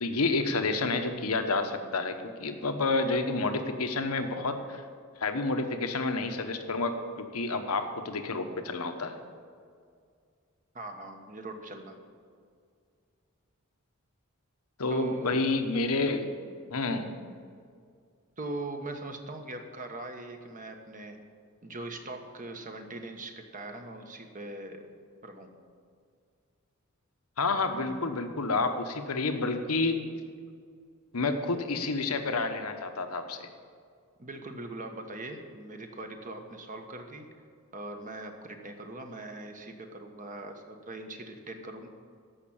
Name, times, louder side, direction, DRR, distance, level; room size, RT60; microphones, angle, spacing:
voice 1, 0.0-4.8 5.2-9.2 14.8-16.3 16.7-17.1 27.4-30.0 31.1-33.5, left 3 dB, 85° left, 7 dB, 1.1 m, -29 dB
voice 2, 10.7-12.0 14.9-15.4 18.4-21.2 21.6-24.9 25.2-25.5 34.2-37.3 37.7-41.9, right 2 dB, 35° right, 5 dB, 1.3 m, -41 dB
14.0 x 5.9 x 8.8 m, 2.2 s
head